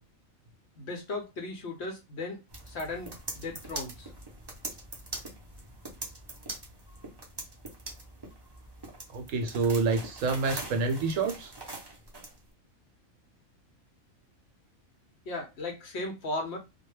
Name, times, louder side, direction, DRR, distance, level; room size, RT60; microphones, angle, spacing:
voice 1, 0.8-2.4 2.7-4.1 15.3-16.6, left 2 dB, 60° left, 0.7 m, -36 dB
sound 1, 2.5-12.4, right 2 dB, 30° right, 0.4 m, -43 dB
voice 2, 9.1-11.5, right 4 dB, 70° right, 0.9 m, -28 dB
2.3 x 2.1 x 3.1 m
omnidirectional pair, 1.4 m